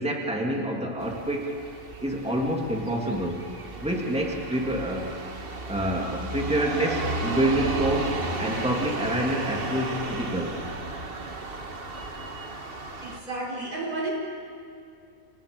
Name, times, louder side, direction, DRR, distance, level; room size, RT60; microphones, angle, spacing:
voice 1, 0.0-1.5 2.0-3.5 3.8-5.1 5.7-10.6, right 1 dB, 5° right, -1 dB, 2.5 m, -27 dB
sound 1, 1.0-13.2, right 2 dB, 40° right, 1.7 m, -34 dB
voice 2, 11.9-12.5 13.0-14.1, right 2 dB, 70° right, -3 dB, 5.9 m, -34 dB
30.0 x 27.5 x 5.3 m, 2.4 s
omnidirectional pair, 1.5 m